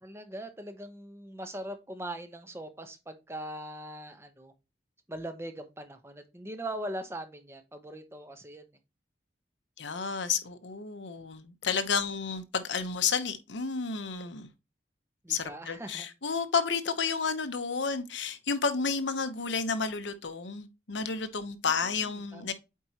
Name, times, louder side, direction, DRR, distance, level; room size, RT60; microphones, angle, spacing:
voice 1, 0.0-4.5 5.1-8.6 15.2-16.1 21.6-22.5, right 1 dB, 15° right, 0.9 m, -41 dB
voice 2, 9.8-14.5 15.3-22.5, left 5 dB, 85° left, 0.9 m, -31 dB
8.4 x 4.6 x 2.9 m
head